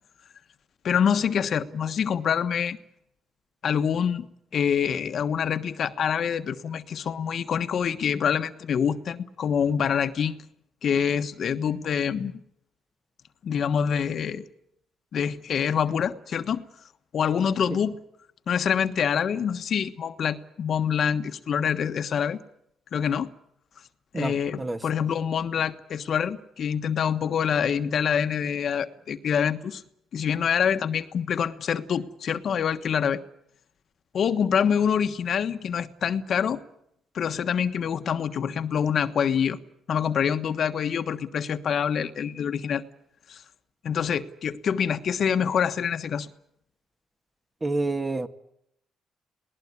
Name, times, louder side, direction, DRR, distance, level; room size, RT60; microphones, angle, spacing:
voice 1, 0.8-2.8 3.6-4.3 4.5-10.3 10.8-12.4 13.4-14.5 15.1-16.6 17.1-18.0 18.5-22.4 22.9-23.3 24.1-29.8 30.1-33.2 34.1-36.6 37.1-39.6 39.9-42.8 43.3-43.4 43.8-46.3, left 7 dB, 60° left, 9 dB, 1.3 m, -26 dB
voice 2, 24.1-24.8 47.6-48.3, right 2 dB, 20° right, 8 dB, 1.7 m, -28 dB
20.5 x 19.0 x 9.7 m, 0.74 s
cardioid pair, 90°, 0 cm